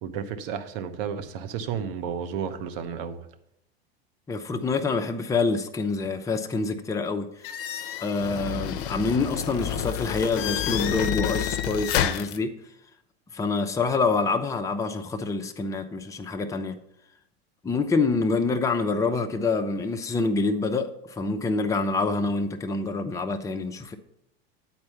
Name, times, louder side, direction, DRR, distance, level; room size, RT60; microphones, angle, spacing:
voice 1, 0.0-3.2, right 7 dB, 60° right, 1.0 m, -32 dB
voice 2, 4.3-7.3 8.0-12.6 13.3-16.8 17.6-24.0, left 3 dB, 10° left, 0.6 m, -26 dB
sound 1, 7.4-12.4, left 10 dB, 60° left, 0.6 m, -29 dB
8.5 x 4.3 x 5.7 m
hypercardioid pair, 100°, 31 cm